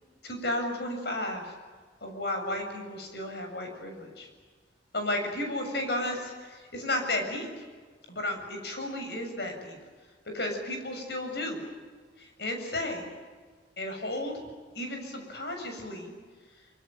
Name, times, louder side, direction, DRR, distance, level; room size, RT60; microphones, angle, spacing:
voice 1, 0.2-1.5 2.0-4.3 4.9-7.5 8.1-9.8 10.3-11.6 12.2-13.1 13.8-14.3 14.7-16.1, left 1 dB, 65° left, 4 dB, 7.3 m, -33 dB
25.0 x 24.0 x 9.1 m, 1.5 s
head